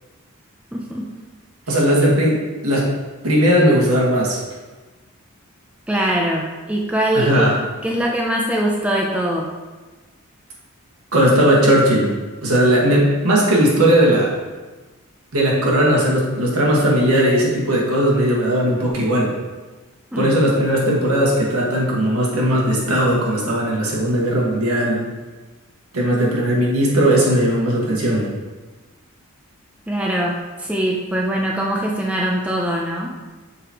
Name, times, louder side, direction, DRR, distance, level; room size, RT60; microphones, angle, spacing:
voice 1, 0.7-1.2 5.9-7.6 7.8-9.6 20.1-20.3 29.9-33.2, right 1 dB, 5° right, -1 dB, 0.4 m, -22 dB
voice 2, 1.7-2.9 3.2-4.4 7.1-7.5 11.1-12.1 12.4-14.3 15.3-19.3 20.2-25.0 25.9-28.3, equal, 80° right, -4 dB, 1.5 m, -17 dB
6.8 x 5.0 x 2.9 m, 1.3 s
head